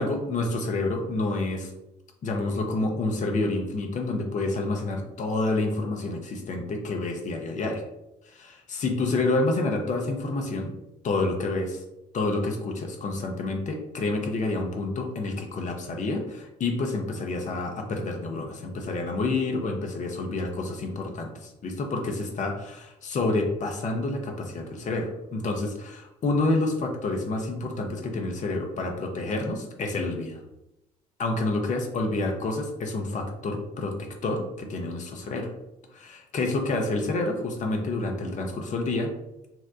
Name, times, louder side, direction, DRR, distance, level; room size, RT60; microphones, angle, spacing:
voice 1, 0.0-1.7 2.2-7.8 8.3-10.7 11.0-11.8 12.1-30.4 31.2-33.9 34.2-35.5 35.9-39.1, left 2 dB, 40° left, 3 dB, 0.7 m, -28 dB
2.8 x 2.1 x 3.6 m, 0.89 s
figure-of-eight pair, 50°, 20 cm